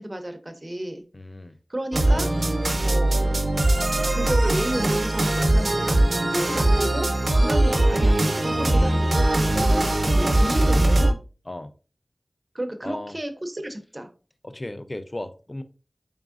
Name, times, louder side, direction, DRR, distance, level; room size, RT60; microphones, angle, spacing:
voice 1, 0.0-1.0 1.7-2.3 2.8-3.3 4.1-6.0 6.3-8.2 8.6-11.1 12.5-14.1, right 1 dB, 35° right, 6 dB, 0.6 m, -32 dB
voice 2, 1.1-1.6 7.6-8.2 11.5-11.7 12.8-13.1 14.4-15.6, left 1 dB, 35° left, 10 dB, 0.4 m, -36 dB
sound 1, 1.9-11.1, right 1 dB, 75° right, 0.7 m, -21 dB
4.0 x 3.5 x 2.5 m, 0.35 s
wide cardioid pair, 60°, 0 cm